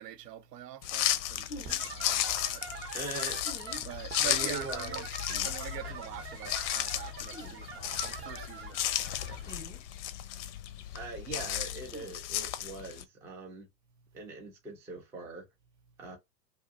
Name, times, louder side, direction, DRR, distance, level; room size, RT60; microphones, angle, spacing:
voice 1, 0.0-3.0 3.8-5.1 5.4-9.8, right 12 dB, 75° right, 0.7 m, -45 dB
sound 1, 0.8-13.0, left 12 dB, 50° left, 0.5 m, -34 dB
sound 2, 1.5-1.8 3.4-3.8 5.3-5.5 7.3-7.5 9.4-9.8 11.9-12.1, left 1 dB, 10° left, 0.8 m, -45 dB
sound 3, 1.6-9.5, right 6 dB, 30° right, 0.7 m, -44 dB
voice 2, 2.9-3.4 4.2-5.0 5.8-5.9 10.9-13.7 14.1-15.5 16.0-16.2, right 3 dB, 5° right, 0.3 m, -41 dB
2.7 x 2.3 x 2.5 m
hypercardioid pair, 105°, 49 cm